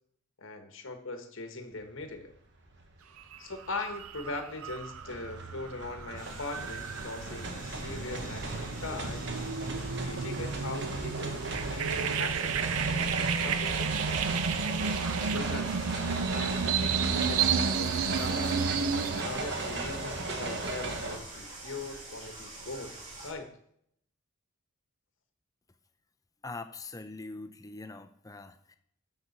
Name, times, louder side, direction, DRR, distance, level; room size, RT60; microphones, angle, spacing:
voice 1, 0.4-2.3 3.4-9.2 10.0-12.7 13.4-14.2 15.3-15.7 16.3-18.5 19.1-23.5, left 3 dB, 60° left, 6 dB, 1.2 m, -41 dB
sound 1, 2.2-2.3 2.7-21.2, right 2 dB, 55° right, 1.2 m, -36 dB
sound 2, 3.2-3.4 3.7-19.2, right 6 dB, 80° right, 0.5 m, -32 dB
sound 3, 6.2-23.3, right 2 dB, 35° right, 2.6 m, -46 dB
voice 2, 26.4-28.8, left 3 dB, 15° left, 8 dB, 0.5 m, -43 dB
12.5 x 6.1 x 4.1 m, 0.72 s
head